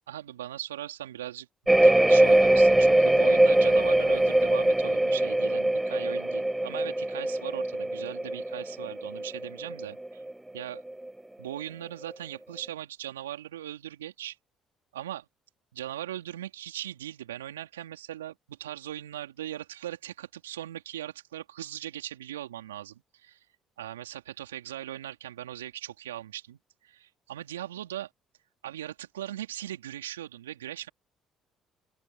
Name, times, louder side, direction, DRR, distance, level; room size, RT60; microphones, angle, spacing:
voice 1, 0.1-10.2 10.5-10.8 11.4-14.4 14.9-15.3 15.7-23.4 23.8-28.1 28.6-30.9, right 12 dB, 85° right, 3.7 m, -39 dB
sound 1, 1.7-10.3 10.6-11.1, right 1 dB, 10° right, 0.4 m, -22 dB
open air
hypercardioid pair, 50°, 0 cm